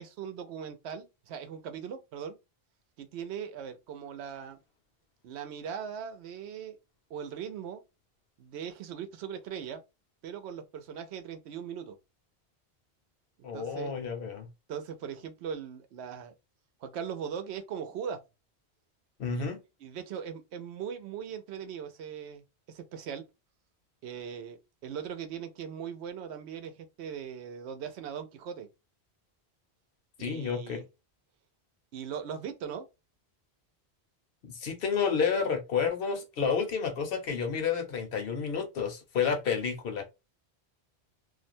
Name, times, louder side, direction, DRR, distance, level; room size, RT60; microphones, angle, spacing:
voice 1, 0.0-2.4 3.0-4.6 5.2-6.8 7.1-7.8 8.4-9.8 10.2-12.0 13.4-13.9 14.7-16.3 16.8-18.2 19.3-19.4 19.8-23.2 24.0-28.7 30.2-30.8 31.9-32.9, right 7 dB, 80° right, 0.8 m, -39 dB
voice 2, 13.4-14.5 19.2-19.6 30.2-30.8 34.5-40.0, left 6 dB, 65° left, 0.9 m, -30 dB
2.4 x 2.1 x 2.6 m
omnidirectional pair, 1.1 m